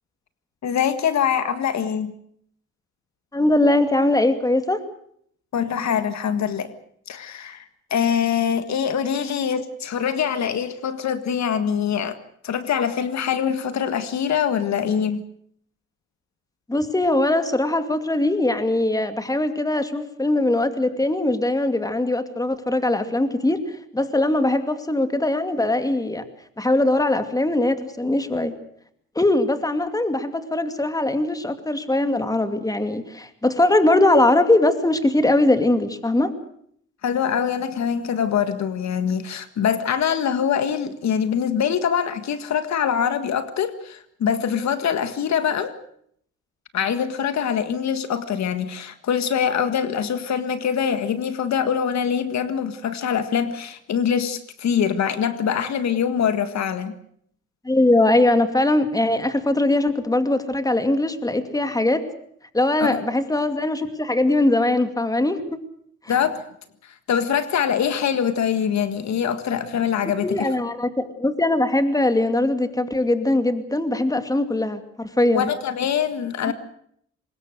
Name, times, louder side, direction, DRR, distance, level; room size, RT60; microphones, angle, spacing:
voice 1, 0.6-2.1 5.5-6.7 7.1-7.7 7.9-12.2 12.4-15.2 37.0-45.8 46.7-56.9 62.8-63.1 66.1-66.4 67.1-70.5 75.3-76.5, left 8 dB, 65° left, 11 dB, 1.7 m, -24 dB
voice 2, 3.3-4.8 16.7-26.2 26.6-28.5 29.2-36.3 57.6-62.0 62.5-65.4 66.0-66.1 70.2-75.5 76.5-76.6, left 2 dB, 10° left, 9 dB, 2.5 m, -21 dB
24.5 x 20.5 x 6.5 m, 0.67 s
cardioid pair, 90°, 30 cm